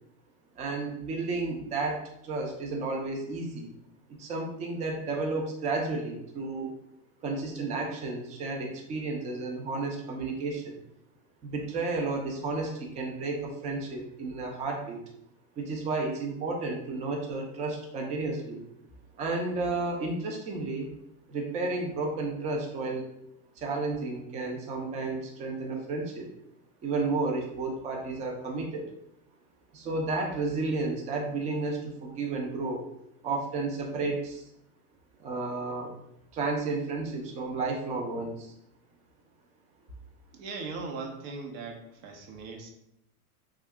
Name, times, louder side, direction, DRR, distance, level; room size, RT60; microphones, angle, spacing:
voice 1, 0.6-3.7 4.2-6.7 7.2-10.8 11.4-15.0 15.6-18.6 19.2-20.9 21.3-23.1 23.6-26.3 26.8-28.9 29.7-32.8 33.2-34.5 35.2-35.9 36.3-38.5, right 3 dB, 20° right, 1 dB, 0.3 m, -32 dB
voice 2, 40.3-42.7, right 4 dB, 65° right, 2 dB, 0.9 m, -39 dB
2.6 x 2.3 x 3.4 m, 0.78 s
hypercardioid pair, 115°, 45 cm